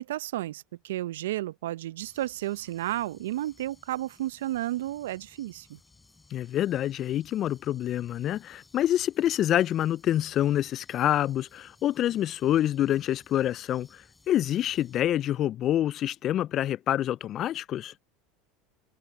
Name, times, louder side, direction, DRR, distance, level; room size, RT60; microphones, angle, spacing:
voice 1, 0.0-5.8, right 14 dB, 75° right, 0.7 m, -32 dB
sound 1, 2.0-15.0, left 3 dB, 15° left, 7.3 m, -60 dB
voice 2, 6.3-17.9, left 12 dB, 45° left, 0.4 m, -27 dB
hypercardioid pair, 85°, 0 cm